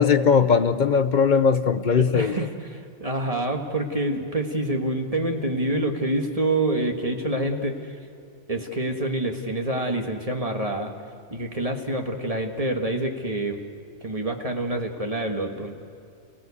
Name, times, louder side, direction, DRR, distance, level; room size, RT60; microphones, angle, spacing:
voice 1, 0.0-2.4, left 6 dB, 45° left, 12 dB, 0.7 m, -19 dB
voice 2, 2.0-8.0 8.5-10.9 11.3-13.6 14.0-15.7, right 1 dB, 30° right, 3 dB, 1.6 m, -27 dB
30.0 x 17.0 x 8.4 m, 2.4 s
omnidirectional pair, 1.3 m